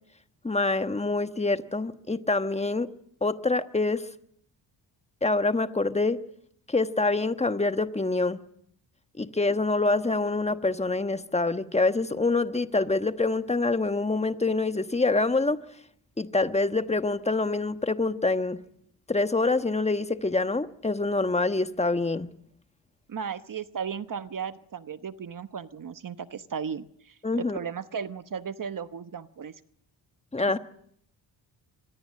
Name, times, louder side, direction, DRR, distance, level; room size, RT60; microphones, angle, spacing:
voice 1, 0.4-2.9 3.2-4.1 5.2-6.2 6.7-8.4 9.2-15.6 16.2-18.6 19.1-22.3 27.2-27.6 30.3-30.6, left 3 dB, 15° left, 10 dB, 1.2 m, -26 dB
voice 2, 23.1-29.5, right 7 dB, 45° right, 12 dB, 1.1 m, -35 dB
25.0 x 21.5 x 7.6 m, 0.69 s
cardioid pair, 90°, 46 cm